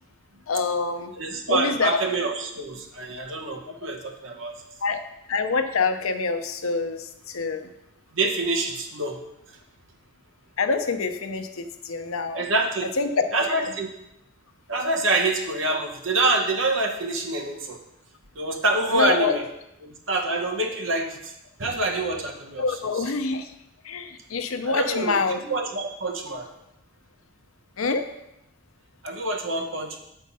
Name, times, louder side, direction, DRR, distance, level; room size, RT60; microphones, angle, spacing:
voice 1, 0.5-1.1 1.5-2.0 4.8-5.0 5.3-7.7 10.6-12.4 13.0-13.1 18.9-19.4 22.6-23.5 23.8-25.4 27.8-28.1, left 4 dB, 80° left, 8 dB, 0.7 m, -26 dB
voice 2, 1.2-4.5 8.1-9.2 12.3-12.8 13.3-13.9 14.7-17.8 18.3-19.4 19.8-21.3 21.6-23.1 24.6-26.5 29.0-30.0, right 2 dB, 65° right, 2 dB, 1.1 m, -26 dB
7.4 x 4.5 x 5.4 m, 0.86 s
head